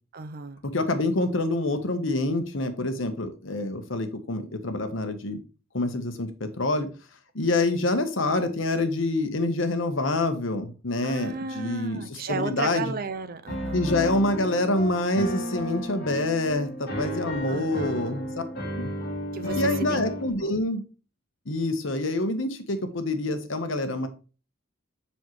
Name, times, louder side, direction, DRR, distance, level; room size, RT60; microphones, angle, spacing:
voice 1, 0.1-0.6 11.0-13.9 17.5-18.4 19.3-20.0 20.4-20.6, right 4 dB, 45° right, 0.5 m, -34 dB
voice 2, 0.7-5.4 5.7-6.9 7.3-12.8 13.7-18.2 18.8-18.9 19.6-20.8 21.5-24.1, left 2 dB, 70° left, 1.1 m, -26 dB
Piano, 13.5-20.3, equal, 50° left, 1.9 m, -32 dB
7.1 x 5.5 x 3.1 m
head